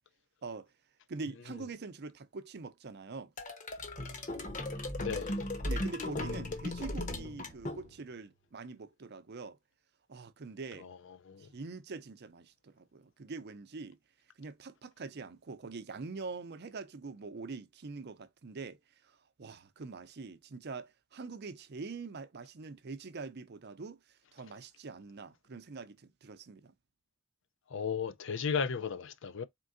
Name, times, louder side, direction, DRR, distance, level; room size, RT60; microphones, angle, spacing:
voice 1, 0.4-0.7 1.1-3.3 5.6-9.6 10.1-10.9 11.4-14.0 14.4-26.7, right 4 dB, 55° right, 0.6 m, -44 dB
sound 1, 3.4-8.2, left 1 dB, 40° left, 1.0 m, -37 dB
voice 2, 5.0-5.4 11.3-11.5 27.7-29.4, left 6 dB, 60° left, 0.5 m, -34 dB
4.4 x 3.6 x 2.5 m
head